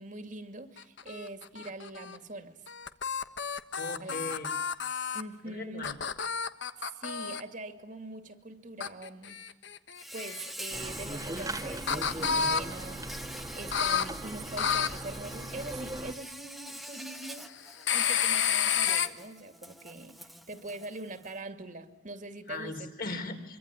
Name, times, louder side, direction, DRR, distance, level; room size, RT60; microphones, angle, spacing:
voice 1, 0.0-2.6 4.0-4.1 5.1-5.8 6.8-9.4 10.1-17.5 17.9-22.9, right 2 dB, 45° right, 2.5 m, -43 dB
sound 1, 0.8-2.2 2.7-5.2 5.8-7.4 8.8-10.5 11.2-12.6 13.7-14.1 14.6-14.9 17.8-19.1, left 7 dB, 75° left, 1.4 m, -30 dB
voice 2, 3.8-4.5 5.5-5.9 22.5-23.6, left 2 dB, 50° left, 4.1 m, -38 dB
Insect, 9.9-21.4, right 1 dB, ahead, 1.2 m, -45 dB
sound 2, 10.7-16.1, right 1 dB, 20° right, 1.5 m, -39 dB
24.5 x 24.5 x 9.9 m
head